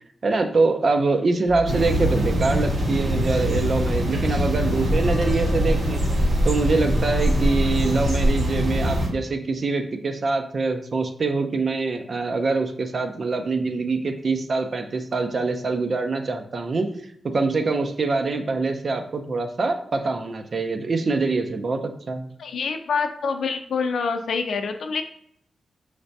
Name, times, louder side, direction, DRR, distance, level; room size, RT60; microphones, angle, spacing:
voice 1, 0.2-6.0 6.4-16.9 17.3-22.3, right 3 dB, 45° right, 5 dB, 0.5 m, -24 dB
sound 1, 1.4-2.3 2.5-3.2 3.7-8.6, left 2 dB, 40° left, 0.6 m, -40 dB
sound 2, 1.7-9.1, equal, 80° right, 1.9 m, -22 dB
voice 2, 22.4-25.0, left 5 dB, 80° left, 7 dB, 0.5 m, -26 dB
5.8 x 3.3 x 2.7 m, 0.68 s
wide cardioid pair, 145°, 0 cm